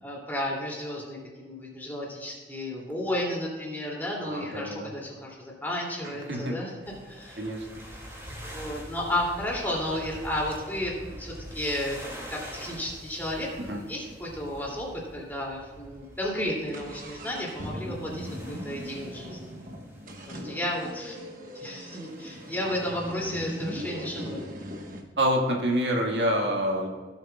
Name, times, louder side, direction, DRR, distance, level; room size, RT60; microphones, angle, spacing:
voice 1, 0.0-5.3 5.6-6.7 7.1-7.4 8.4-12.0 12.3-13.5 13.7-14.9 15.1-19.5 20.3-21.2 21.5-24.4, left 1 dB, 10° left, -3 dB, 2.6 m, -33 dB
voice 2, 4.2-4.9 6.0-6.6 7.4-7.7 13.6-13.8 25.2-26.9, equal, 75° right, 0 dB, 1.7 m, -27 dB
sound 1, 5.7-5.8 6.2-8.9 9.5-9.6 9.9-10.1 10.5-14.1 14.4-14.5 14.7-14.8 15.4-15.6 15.9-25.0, equal, 50° right, 1.2 m, -41 dB
sound 2, 6.8-20.8 22.0-22.8 23.4-23.6, equal, 15° right, 2.3 m, -45 dB
17.5 x 7.9 x 2.3 m, 1.4 s
head